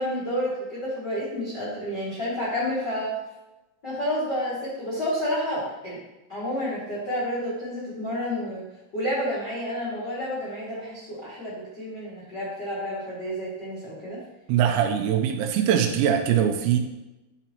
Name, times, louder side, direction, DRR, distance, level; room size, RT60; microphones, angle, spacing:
voice 1, 0.0-3.1 3.8-6.0 6.3-8.6 8.9-14.2, equal, 60° left, -8 dB, 1.0 m, -30 dB
voice 2, 14.5-16.8, right 9 dB, 85° right, 4 dB, 2.7 m, -22 dB
11.0 x 5.8 x 3.0 m, 1.0 s
omnidirectional pair, 5.8 m